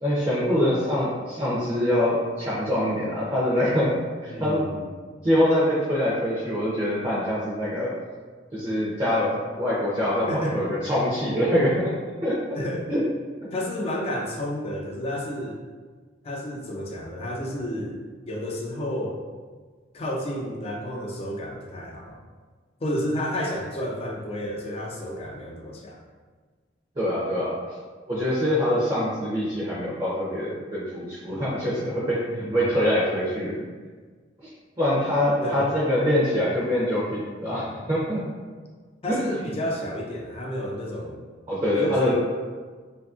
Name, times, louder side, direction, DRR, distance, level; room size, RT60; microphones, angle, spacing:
voice 1, 0.0-4.0 4.2-4.7 5.2-7.9 8.5-11.9 12.2-12.4 12.9-13.0 27.0-27.6 28.1-33.5 34.4-34.5 34.8-38.2 39.1-39.2 41.5-42.1, left 1 dB, 25° right, -9 dB, 0.5 m, -24 dB
voice 2, 4.3-4.8 10.3-10.7 12.5-12.9 13.5-15.6 16.2-18.0 18.3-19.2 19.9-22.2 22.8-26.0 32.3-32.8 35.4-35.7 39.0-41.2 41.7-42.1, equal, 30° left, -1 dB, 0.3 m, -31 dB
2.7 x 2.6 x 2.3 m, 1.5 s
head